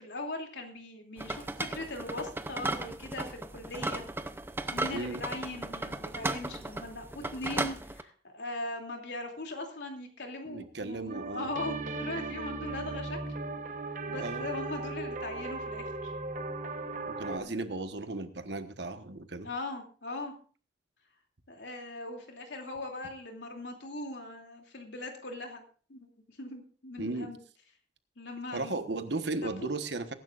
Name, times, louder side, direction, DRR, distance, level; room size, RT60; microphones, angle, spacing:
voice 1, 0.0-4.0 4.7-13.2 14.1-16.1 17.4-17.8 19.4-20.3 21.5-25.6 25.9-27.4 28.2-28.9 29.4-29.7, left 2 dB, 80° left, 3 dB, 2.7 m, -40 dB
sound 1, 1.2-8.0, right 2 dB, 10° right, 0.6 m, -36 dB
voice 2, 4.9-5.2 10.5-11.5 14.1-14.5 17.1-19.5 27.0-27.3 28.5-30.1, right 2 dB, 75° right, 9 dB, 1.2 m, -35 dB
sound 2, 11.1-17.4, right 3 dB, 45° right, 1.0 m, -37 dB
22.0 x 11.0 x 2.5 m, 0.41 s
head